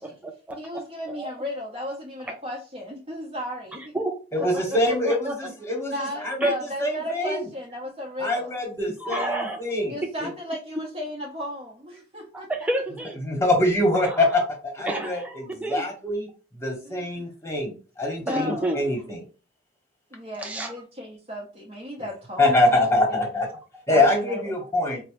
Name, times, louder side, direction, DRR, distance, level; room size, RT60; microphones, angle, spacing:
voice 1, 0.0-0.8 1.1-1.3 3.9-4.8 5.0-5.3 6.4-6.5 9.0-9.6 10.0-10.3 12.3-13.2 14.0-14.3 14.9-15.8 18.3-18.8 20.4-20.7, right 1 dB, 10° right, 0.3 m, -30 dB
voice 2, 0.6-3.9 5.9-8.6 9.9-12.5 16.8-17.3 18.2-18.7 20.1-22.8 23.1-23.3 23.9-24.6, equal, 35° right, 0.8 m, -35 dB
voice 3, 4.3-6.5 6.8-7.5 8.2-10.0 13.2-16.3 16.6-19.2 22.4-23.5 23.9-25.0, left 1 dB, 15° left, 1.1 m, -24 dB
4.3 x 2.0 x 3.1 m
head